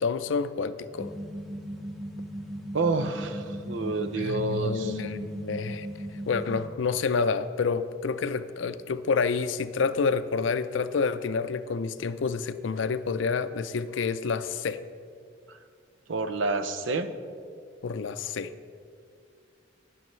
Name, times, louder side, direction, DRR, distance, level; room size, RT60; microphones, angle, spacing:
voice 1, 0.0-1.1 4.2-5.9 6.3-14.8 17.8-18.5, left 5 dB, 80° left, 12 dB, 0.5 m, -28 dB
sound 1, 0.9-6.7, equal, ahead, 0.8 m, -37 dB
voice 2, 2.7-5.0 15.5-15.6 16.1-17.2, right 3 dB, 85° right, 10 dB, 0.6 m, -29 dB
18.5 x 6.3 x 3.2 m, 2.3 s
head